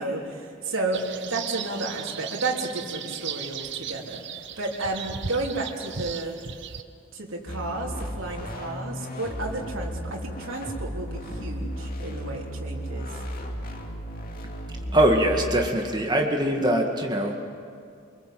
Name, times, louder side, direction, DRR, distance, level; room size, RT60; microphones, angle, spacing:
voice 1, 0.0-4.2 4.6-6.4 7.1-13.1, right 2 dB, 75° right, -1 dB, 3.4 m, -32 dB
sound 1, 0.9-6.8, right 8 dB, 55° right, 0.9 m, -36 dB
sound 2, 7.5-15.7, equal, 45° left, 2.4 m, -34 dB
voice 2, 14.9-17.4, right 1 dB, 20° right, 2 dB, 2.0 m, -22 dB
25.0 x 23.5 x 7.7 m, 2.4 s
head